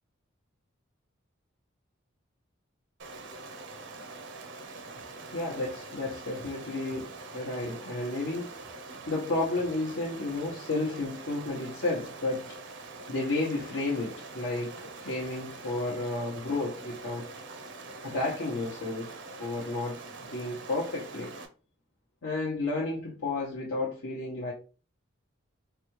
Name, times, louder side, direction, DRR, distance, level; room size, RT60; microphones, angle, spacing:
Stream, 3.0-21.5, right 3 dB, 60° right, 0.6 m, -44 dB
voice 1, 5.3-8.5 9.1-12.6 13.1-17.3 18.0-19.1 19.4-21.3 22.2-24.5, left 2 dB, 75° left, 0.8 m, -32 dB
4.0 x 2.3 x 3.0 m
head